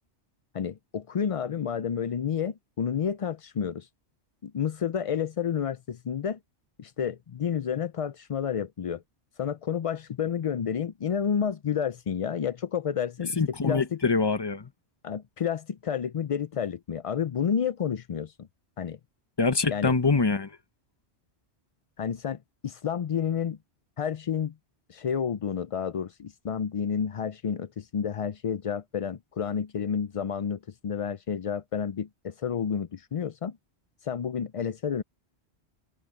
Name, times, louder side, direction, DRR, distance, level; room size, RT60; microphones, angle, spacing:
voice 1, 0.5-3.9 4.4-6.4 6.8-9.0 9.4-13.8 15.0-18.5 18.8-19.0 19.7-20.0 22.0-23.6 24.0-24.5 24.9-33.6 34.0-35.0, left 7 dB, 55° left, 0.3 m, -30 dB
voice 2, 13.4-14.7 19.4-20.6, left 4 dB, 25° left, 0.8 m, -24 dB
omnidirectional pair, 1.1 m